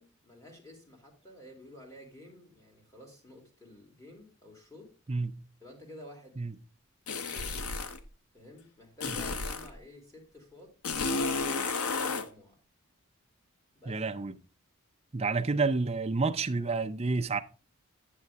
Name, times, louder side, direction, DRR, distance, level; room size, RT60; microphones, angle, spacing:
voice 1, 0.0-4.9 5.6-6.4 7.2-7.5 8.3-10.7 11.6-12.6 13.7-14.0, left 1 dB, 15° left, 2.6 m, -52 dB
voice 2, 5.1-5.4 6.4-6.5 9.1-9.2 13.9-14.4 15.1-17.4, right 3 dB, 25° right, 0.5 m, -29 dB
sound 1, 7.1-8.0 9.0-9.7 10.8-12.3, left 4 dB, 80° left, 0.8 m, -32 dB
9.5 x 6.5 x 3.5 m
head